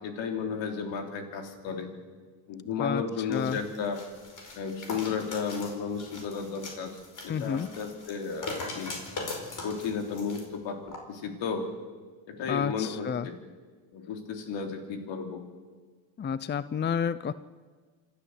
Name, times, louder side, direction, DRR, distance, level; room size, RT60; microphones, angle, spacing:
voice 1, 0.0-1.9 2.5-4.0 4.5-9.0 9.6-11.7 12.3-13.4 13.9-15.4, left 6 dB, 70° left, 4 dB, 3.5 m, -33 dB
sound 1, 3.3-10.4 10.9-11.0, left 3 dB, 40° left, 5.2 m, -40 dB
voice 2, 7.3-7.7 12.5-13.3 16.2-17.3, left 7 dB, 25° left, 16 dB, 0.6 m, -30 dB
26.5 x 13.0 x 8.0 m, 1.5 s
cardioid pair, 95°, 46 cm